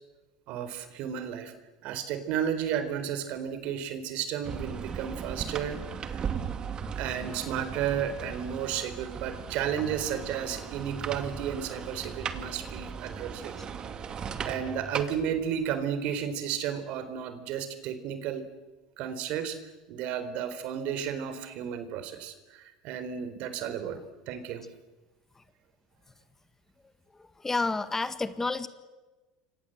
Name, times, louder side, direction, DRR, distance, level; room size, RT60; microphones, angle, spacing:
voice 1, 0.5-1.5 1.8-6.2 7.0-13.5 14.4-18.5 19.0-19.6 19.9-24.0 24.3-24.6, right 8 dB, 60° right, 11 dB, 4.0 m, -33 dB
sound 1, 4.4-15.9, right 6 dB, 35° right, 2.5 m, -37 dB
voice 2, 27.1-28.7, left 3 dB, 15° left, 11 dB, 1.7 m, -31 dB
28.0 x 25.0 x 8.0 m, 1.2 s
hypercardioid pair, 90°, 2 cm